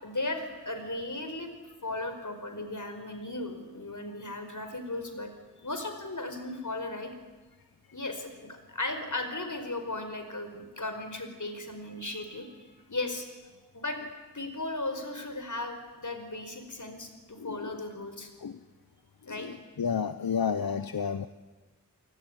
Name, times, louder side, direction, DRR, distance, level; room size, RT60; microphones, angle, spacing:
voice 1, 0.0-1.5 1.8-5.3 5.6-7.1 7.9-13.3 13.7-14.0 14.3-18.3 19.3-19.5, left 2 dB, 60° left, 7 dB, 5.0 m, -36 dB
voice 2, 17.4-17.7 18.4-18.6 19.3-21.3, left 6 dB, 80° left, 11 dB, 0.9 m, -31 dB
29.5 x 19.0 x 9.9 m, 1.2 s
wide cardioid pair, 45°, 35 cm